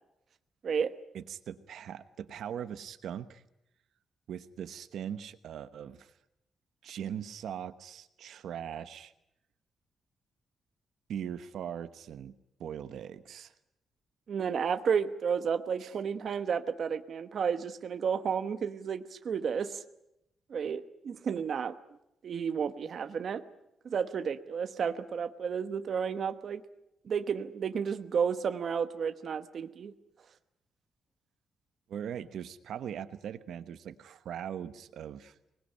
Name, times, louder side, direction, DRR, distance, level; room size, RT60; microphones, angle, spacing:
voice 1, 0.6-0.9 14.3-19.8 20.5-21.7 22.2-23.4 23.8-26.6 27.0-29.9, right 6 dB, 45° right, 9 dB, 1.1 m, -32 dB
voice 2, 1.1-3.4 4.3-6.1 6.8-9.1 11.1-12.3 12.6-13.5 15.8-15.9 31.9-35.3, right 9 dB, 70° right, 11 dB, 1.1 m, -40 dB
25.0 x 20.0 x 9.9 m, 0.84 s
wide cardioid pair, 175°, 0 cm